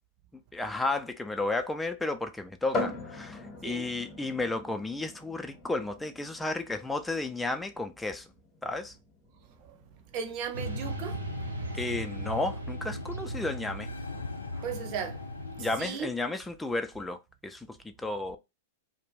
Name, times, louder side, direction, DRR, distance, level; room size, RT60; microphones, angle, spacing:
voice 1, 0.5-8.3 8.6-8.9 11.7-13.9 15.6-18.4, left 2 dB, 5° left, 0.3 m, -33 dB
sound 1, 2.7-16.2, left 2 dB, 25° left, 0.8 m, -43 dB
voice 2, 10.1-11.2 14.5-15.2 15.6-16.1, right 7 dB, 45° right, 0.6 m, -36 dB
Motorcycle / Traffic noise roadway noise, 10.5-15.8, right 1 dB, 90° right, 0.6 m, -38 dB
sound 2, 10.6-15.9, left 4 dB, 85° left, 0.3 m, -44 dB
2.3 x 2.1 x 3.2 m
hypercardioid pair, 105°, 0 cm